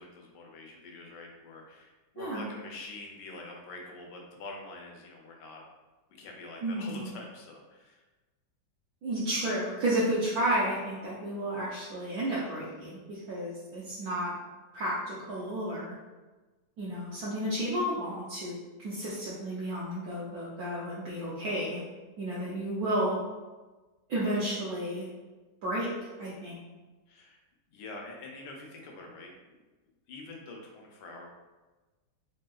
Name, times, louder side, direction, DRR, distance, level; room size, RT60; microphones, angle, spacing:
voice 1, 0.0-5.6 6.1-8.0 27.1-27.4 27.7-29.3 30.1-31.3, left 2 dB, 80° left, 0 dB, 1.3 m, -45 dB
voice 2, 2.2-2.5 6.6-7.1 9.0-14.3 14.7-16.0 16.8-21.8 22.2-23.2 24.1-25.1 25.6-25.9 26.2-26.6, right 1 dB, 70° right, -7 dB, 1.0 m, -32 dB
3.5 x 2.7 x 2.3 m, 1.2 s
omnidirectional pair, 1.9 m